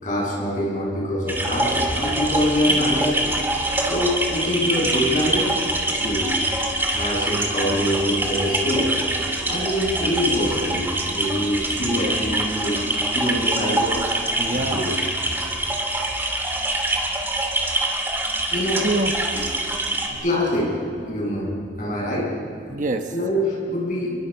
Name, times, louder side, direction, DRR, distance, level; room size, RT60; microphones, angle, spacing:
voice 1, 0.0-3.4 3.9-5.5 5.9-6.4 6.9-8.9 9.5-14.0 14.5-14.9 18.5-18.9 20.2-22.3 23.1-24.3, equal, 45° left, -4 dB, 7.9 m, -24 dB
sound 1, 1.3-20.1, right 1 dB, 10° right, 2.6 m, -24 dB
voice 2, 14.4-14.9 18.8-19.7 20.1-20.2 22.7-23.1, right 2 dB, 45° right, 5 dB, 1.1 m, -27 dB
30.0 x 23.0 x 5.8 m, 2.5 s
head